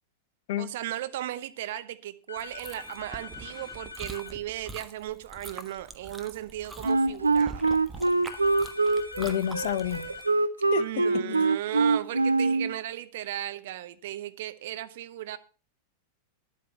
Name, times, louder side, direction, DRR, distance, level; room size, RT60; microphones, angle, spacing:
voice 1, 0.6-7.6 10.8-15.4, right 13 dB, 55° right, 0.8 m, -36 dB
sound 1, 2.3-4.4 8.3-10.4, left 4 dB, 85° left, 1.1 m, -43 dB
Chewing mastication, 2.4-10.2, right 3 dB, 10° right, 1.3 m, -45 dB
Wind instrument woodwind instrument, 6.8-12.7, right 3 dB, 80° right, 0.7 m, -24 dB
voice 2, 9.2-10.1 10.7-11.5, left 11 dB, 55° left, 0.7 m, -30 dB
10.5 x 8.5 x 5.9 m
figure-of-eight pair, 90°, 0 cm